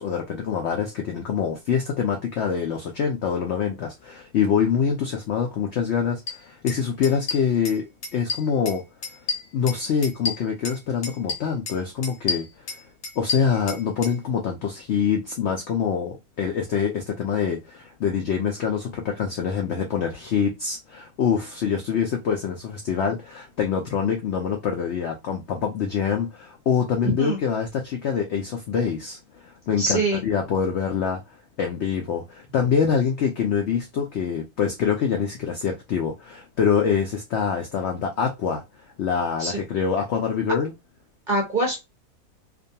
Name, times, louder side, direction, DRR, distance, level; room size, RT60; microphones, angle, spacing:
voice 1, 0.0-8.8 9.5-12.5 13.2-31.2 31.6-38.6 39.0-40.7, left 7 dB, 85° left, 0.6 m, -25 dB
sound 1, 6.3-6.4 6.7-6.8 7.0-7.8 8.0-8.8 9.0-10.8 11.0-11.8 12.0-14.1, left 4 dB, 55° left, 1.0 m, -30 dB
voice 2, 27.0-27.4 29.8-30.2 39.4-39.6 41.3-41.8, right 2 dB, 45° right, 0.6 m, -24 dB
2.5 x 2.2 x 2.7 m
omnidirectional pair, 1.7 m